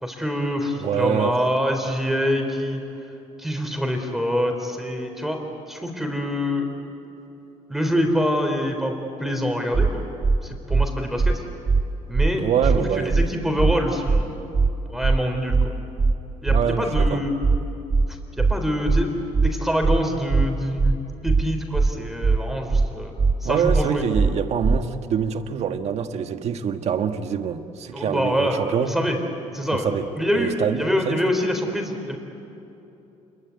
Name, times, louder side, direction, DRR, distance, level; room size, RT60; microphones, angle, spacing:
voice 1, 0.0-2.8 3.4-5.4 5.7-6.7 7.7-10.0 10.4-11.4 12.1-12.4 12.8-14.3 14.9-15.6 16.4-17.3 18.4-21.0 21.2-23.1 23.4-24.0 27.9-29.2 29.5-29.9 30.2-32.2, equal, ahead, 3 dB, 3.8 m, -25 dB
voice 2, 0.8-1.4 12.4-13.1 16.5-17.2 23.4-29.0 29.7-30.1 30.3-31.2, right 8 dB, 55° right, 7 dB, 1.5 m, -25 dB
sound 1, 9.7-9.9 10.2-10.4 10.7-10.9 11.2-11.3 11.7-11.8 12.1-12.3 12.6-12.8 13.1-13.3 13.6-13.7 14.1-14.2 14.5-14.7 15.0-15.2 15.5-15.7 16.0-16.1 16.5-16.6 16.9-17.1 17.4-17.6 17.9-18.1 18.4-18.5 18.9-19.0 19.3-19.5 19.8-20.0 20.3-20.5 20.8-20.9 21.3-21.4 21.7-21.9 22.2-22.4 22.7-22.9 23.2-23.3 23.7-23.8 24.1-24.3 24.6-24.8, right 4 dB, 20° right, 0.8 m, -19 dB
28.0 x 22.5 x 9.5 m, 2.9 s
cardioid pair, 125°, 13 cm